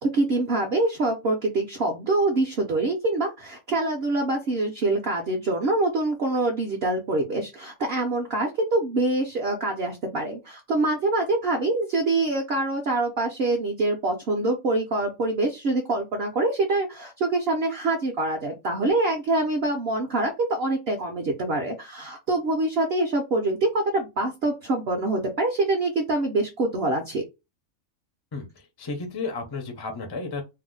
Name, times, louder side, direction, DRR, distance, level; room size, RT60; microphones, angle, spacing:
voice 1, 0.0-27.2, right 2 dB, 60° right, 0.7 m, -25 dB
voice 2, 28.3-30.4, left 3 dB, 40° left, 0.3 m, -33 dB
2.7 x 2.0 x 3.7 m
omnidirectional pair, 1.5 m